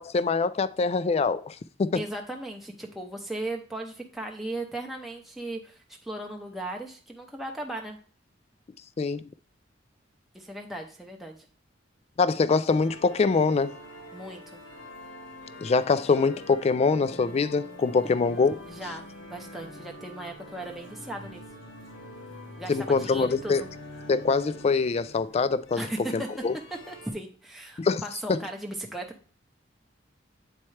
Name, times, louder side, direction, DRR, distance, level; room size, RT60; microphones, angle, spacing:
voice 1, 0.0-2.0 9.0-9.2 12.2-13.7 15.6-18.6 22.7-23.6 24.1-25.9 26.1-26.5 27.8-28.0 28.3-28.4, left 4 dB, 35° left, 0.3 m, -24 dB
voice 2, 1.9-8.0 10.3-11.4 14.1-14.6 18.7-21.4 22.6-23.7 25.7-26.3 26.9-29.1, right 1 dB, ahead, 0.6 m, -37 dB
sound 1, 12.7-27.1, left 1 dB, 85° left, 1.4 m, -45 dB
8.5 x 4.4 x 3.2 m
head